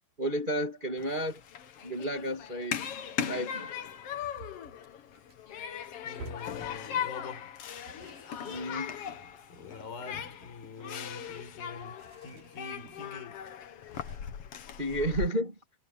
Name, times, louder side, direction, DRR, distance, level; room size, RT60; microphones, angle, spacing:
voice 1, 0.2-1.4 1.8-2.8 3.3-3.7 8.4-8.9 14.8-15.5, right 1 dB, 20° right, 1.3 m, -32 dB
Human group actions, 1.0-15.3, left 8 dB, 55° left, 1.7 m, -39 dB
sound 1, 4.1-7.3 7.7-12.9 13.3-13.4 13.9-14.2, right 3 dB, 60° right, 6.4 m, -52 dB
voice 2, 6.0-7.5 9.5-13.5, left 5 dB, 75° left, 7.1 m, -45 dB
omnidirectional pair, 4.2 m